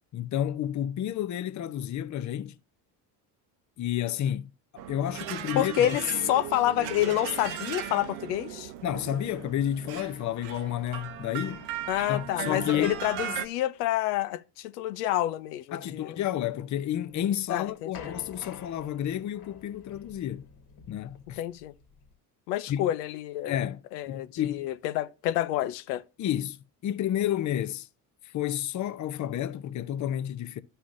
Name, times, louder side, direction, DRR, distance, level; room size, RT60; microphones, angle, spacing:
voice 1, 0.1-2.6 3.8-4.5 4.9-6.0 8.8-11.7 12.1-13.0 15.7-20.5 20.9-21.4 22.7-22.9 23.4-24.7 26.2-27.9 28.2-30.6, left 11 dB, 40° left, 0.7 m, -31 dB
sound 1, 4.8-13.5, right 10 dB, 75° right, 0.9 m, -37 dB
voice 2, 5.6-8.7 11.9-16.2 17.5-18.1 21.4-21.7 22.5-23.6 23.9-26.0, left 13 dB, 85° left, 0.7 m, -28 dB
sound 2, 17.2-22.1, left 6 dB, 55° left, 1.6 m, -49 dB
11.5 x 5.6 x 2.5 m
supercardioid pair, 80°, 46 cm